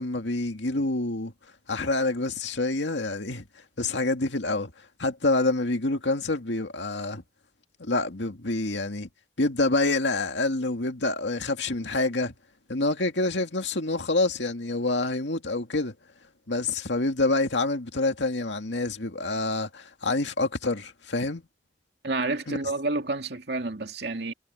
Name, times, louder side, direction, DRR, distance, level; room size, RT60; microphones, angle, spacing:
voice 1, 0.0-1.3 1.7-3.4 3.8-4.7 5.0-7.2 7.8-9.1 9.4-12.3 12.7-15.9 16.5-21.4 22.5-22.6, left 2 dB, 90° left, 2.2 m, -27 dB
voice 2, 22.0-24.3, right 2 dB, 65° right, 2.4 m, -29 dB
head